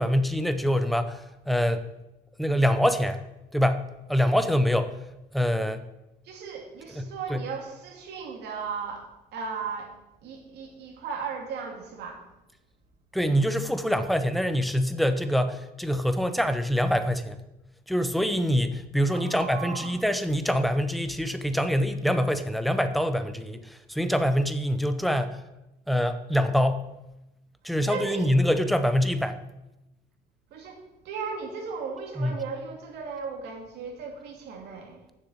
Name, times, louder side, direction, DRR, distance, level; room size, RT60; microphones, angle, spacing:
voice 1, 0.0-1.8 2.4-3.2 3.5-3.8 4.1-4.9 5.3-5.9 7.0-7.4 13.1-17.4 17.9-25.4 25.9-26.8 27.6-29.4 32.2-32.3, equal, ahead, 9 dB, 0.8 m, -25 dB
voice 2, 6.2-12.3 19.1-20.0 27.9-28.3 30.5-35.0, right 5 dB, 80° right, 2 dB, 2.3 m, -36 dB
7.2 x 6.5 x 7.9 m, 0.94 s
cardioid pair, 110°, 17 cm